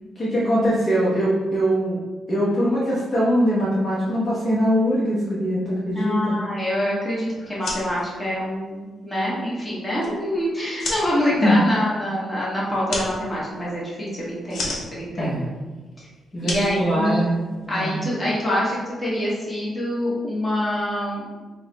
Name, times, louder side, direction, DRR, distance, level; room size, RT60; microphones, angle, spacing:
voice 1, 0.2-2.0 2.3-6.4 11.4-11.6 15.2-15.4 16.3-17.3 17.7-18.0, equal, 30° left, -8 dB, 0.9 m, -22 dB
voice 2, 5.9-15.4 16.4-17.2 17.7-21.2, left 1 dB, 10° left, -8 dB, 1.2 m, -25 dB
sound 1, 7.4-17.7, left 2 dB, 60° left, 1.1 m, -36 dB
4.6 x 2.2 x 4.0 m, 1.3 s
wide cardioid pair, 160°, 0 cm